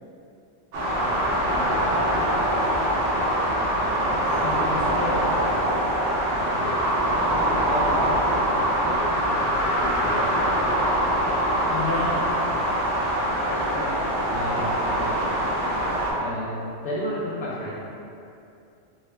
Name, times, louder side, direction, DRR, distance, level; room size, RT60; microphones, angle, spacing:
voice 1, 0.7-2.7 4.5-4.9 6.3-8.5 9.0-11.2 14.3-15.1 16.2-17.7, left 1 dB, 60° left, -7 dB, 0.6 m, -34 dB
sound 1, 0.7-16.1, right 1 dB, 70° right, 1.0 m, -23 dB
voice 2, 4.0-5.3 11.7-12.4 13.5-14.0 15.4-15.7, left 3 dB, 20° left, -8 dB, 0.4 m, -32 dB
3.5 x 2.2 x 3.3 m, 2.6 s
omnidirectional pair, 1.3 m